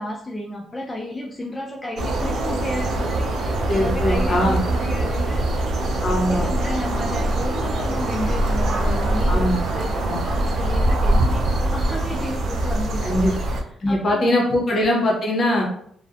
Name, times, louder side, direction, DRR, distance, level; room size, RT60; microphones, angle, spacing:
voice 1, 0.0-5.8 6.3-9.9 10.2-13.5 13.9-14.5, left 1 dB, 15° left, -2 dB, 0.3 m, -32 dB
sound 1, 2.0-13.6, right 1 dB, 70° right, 0.4 m, -23 dB
voice 2, 3.7-4.6 6.0-6.5 9.3-9.6 10.1-10.2 13.0-13.3 13.8-15.7, left 1 dB, 45° left, -1 dB, 0.8 m, -21 dB
2.5 x 2.0 x 2.4 m, 0.66 s
cardioid pair, 90°, 0 cm